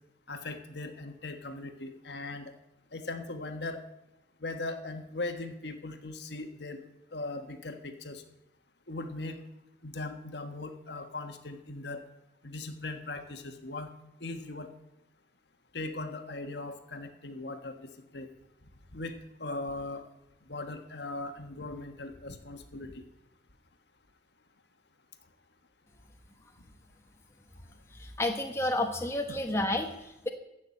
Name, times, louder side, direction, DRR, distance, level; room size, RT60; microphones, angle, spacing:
voice 1, 0.3-2.5 2.9-3.8 4.4-6.8 7.1-8.2 8.9-9.4 9.8-12.0 12.4-13.9 14.2-14.7 15.7-18.3 18.9-20.0 20.5-23.0 29.3-29.4, left 2 dB, 60° left, 7 dB, 1.4 m, -39 dB
voice 2, 27.9-30.3, left 1 dB, 15° left, 3 dB, 1.0 m, -31 dB
15.0 x 6.1 x 8.5 m, 0.88 s
head